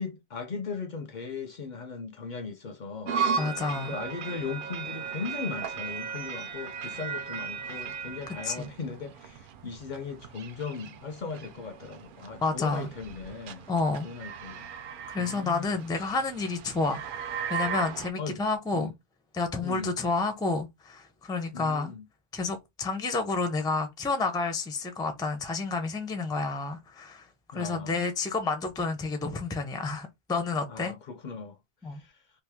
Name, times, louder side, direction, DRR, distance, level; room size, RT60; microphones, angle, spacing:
voice 1, 0.0-3.2 3.9-13.7 14.0-14.7 15.2-15.7 18.2-18.4 18.7-18.9 19.6-20.0 21.5-22.1 27.5-28.1 30.7-31.6 31.9-32.2, left 5 dB, 55° left, 0.6 m, -38 dB
sound 1, 3.1-18.1, right 6 dB, 60° right, 0.6 m, -36 dB
voice 2, 3.4-3.9 8.4-8.7 12.4-12.9 13.7-14.1 15.1-17.0 17.5-18.9 19.3-21.9 22.3-27.3 27.5-30.9 31.8-32.0, left 3 dB, 5° left, 0.4 m, -30 dB
2.8 x 2.6 x 3.5 m
omnidirectional pair, 1.0 m